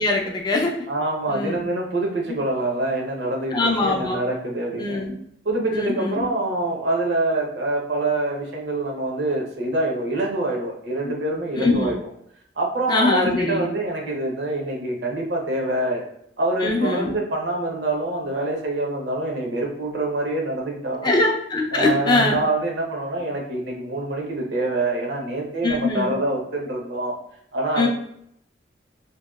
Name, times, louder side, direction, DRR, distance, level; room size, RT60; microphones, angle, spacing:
voice 1, 0.0-0.7 1.3-1.6 3.5-4.2 4.8-5.1 5.7-6.2 11.1-11.2 11.6-11.9 12.9-13.7 16.6-17.1 21.0-22.4 25.6-26.1 27.8-27.9, left 2 dB, 25° left, 1 dB, 0.3 m, -22 dB
voice 2, 0.9-5.0 5.4-12.0 12.6-16.0 16.4-21.2 21.7-27.2 27.5-27.9, right 2 dB, 70° right, 0 dB, 0.7 m, -25 dB
2.7 x 2.1 x 2.3 m, 0.72 s
head